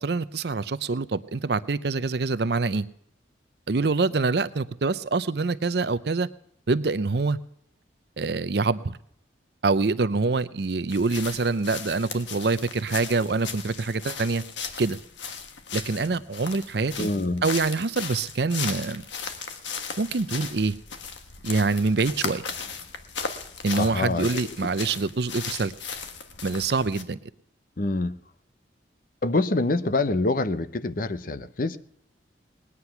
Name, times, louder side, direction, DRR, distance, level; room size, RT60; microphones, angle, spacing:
voice 1, 0.0-2.9 3.7-6.3 6.7-7.4 8.2-9.0 9.6-14.4 14.8-15.0 15.7-17.1 17.4-19.0 20.0-20.7 21.4-22.4 23.6-25.7 26.4-27.2, right 3 dB, 60° right, 15 dB, 0.6 m, -25 dB
sound 1, 10.9-27.0, left 6 dB, 80° left, 1.4 m, -37 dB
voice 2, 17.0-17.4 23.7-24.3 27.8-28.2 29.2-31.8, left 2 dB, 50° left, 13 dB, 0.7 m, -25 dB
19.5 x 9.8 x 5.8 m, 0.72 s
head